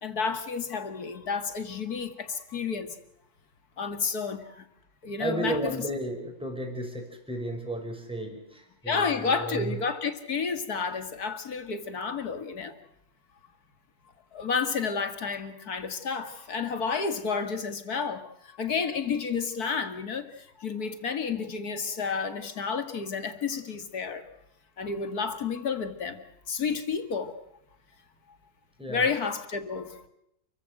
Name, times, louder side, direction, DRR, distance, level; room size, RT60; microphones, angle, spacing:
voice 1, 0.0-2.9 3.8-4.7 5.0-5.7 8.8-12.8 14.3-24.3 24.8-26.2 26.5-27.3 28.9-30.1, left 5 dB, 55° left, 2.5 m, -31 dB
voice 2, 5.2-9.8 28.8-29.1, right 1 dB, 5° right, 5.5 m, -33 dB
29.5 x 15.5 x 7.9 m
omnidirectional pair, 2.0 m